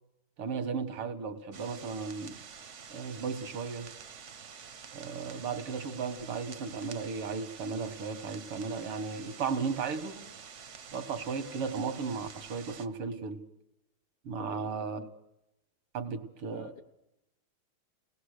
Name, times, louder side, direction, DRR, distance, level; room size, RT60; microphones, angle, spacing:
voice 1, 0.4-2.4 2.9-3.9 4.9-10.3 10.9-13.4 14.2-15.0 15.9-16.8, right 5 dB, 85° right, 9 dB, 2.3 m, -35 dB
sound 1, 1.5-12.9, right 6 dB, 50° right, 0.9 m, -48 dB
voice 2, 14.4-14.7 15.0-15.1 16.5-16.8, left 3 dB, 45° left, 9 dB, 1.4 m, -47 dB
29.5 x 19.0 x 6.5 m, 0.91 s
omnidirectional pair, 2.4 m